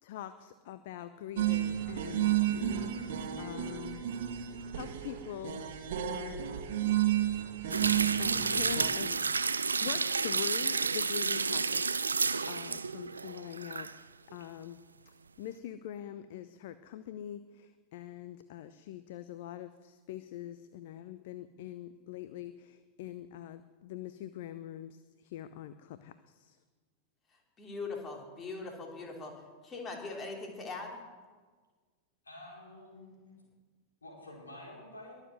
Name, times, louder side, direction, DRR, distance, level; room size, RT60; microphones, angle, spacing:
voice 1, 0.0-4.1 4.7-5.6 6.1-6.5 7.6-9.2 9.8-14.8 15.4-26.6, left 11 dB, 50° left, 12 dB, 0.7 m, -44 dB
sound 1, 1.4-8.9, right 12 dB, 55° right, 1.4 m, -32 dB
sound 2, 7.7-14.0 14.3-14.4, right 4 dB, 75° right, 0.5 m, -31 dB
voice 2, 27.6-29.3 29.6-31.0, left 3 dB, 25° left, 2 dB, 3.1 m, -41 dB
voice 3, 32.2-33.2 34.0-35.1, left 1 dB, 75° left, -2 dB, 5.0 m, -49 dB
22.0 x 7.4 x 7.8 m, 1.4 s
figure-of-eight pair, 90°, 0 cm